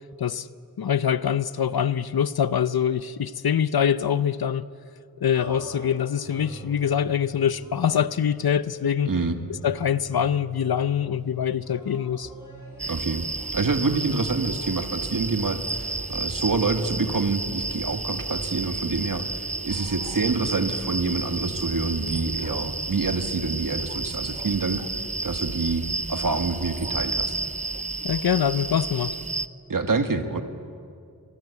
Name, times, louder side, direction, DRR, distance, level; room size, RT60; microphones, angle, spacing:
voice 1, 0.8-4.7 5.2-9.1 9.6-12.3 28.0-29.1, left 8 dB, 85° left, 0.7 m, -24 dB
sound 1, 5.3-5.9 6.3-6.9 7.6-8.5 9.2-10.2 11.6-13.0, left 1 dB, 60° left, 8.0 m, -46 dB
sound 2, 5.4-23.1, right 1 dB, 40° right, 4.7 m, -45 dB
sound 3, 12.8-29.5, right 3 dB, 20° right, 0.6 m, -31 dB
voice 2, 12.9-13.3 13.5-19.2 19.6-24.8 25.2-25.8 26.1-27.4 29.7-30.4, right 3 dB, 65° right, 1.8 m, -26 dB
25.5 x 19.5 x 8.3 m
wide cardioid pair, 55°, 36 cm